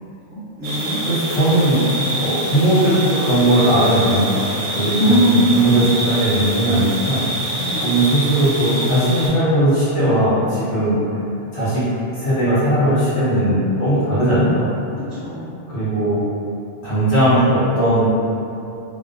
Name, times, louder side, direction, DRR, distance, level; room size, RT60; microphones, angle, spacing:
voice 1, 0.3-1.0 5.0-5.7 7.6-7.8 15.2-15.6, equal, 35° right, -15 dB, 1.0 m, -19 dB
sound 1, 0.6-9.3, right 1 dB, 80° right, 0.9 m, -26 dB
voice 2, 1.0-1.8 2.1-4.4 4.7-7.2 7.8-11.0 11.5-11.8 12.1-14.7 15.7-16.2 16.8-18.1, right 1 dB, 65° left, -12 dB, 1.1 m, -18 dB
2.4 x 2.1 x 2.5 m, 2.8 s
omnidirectional pair, 1.3 m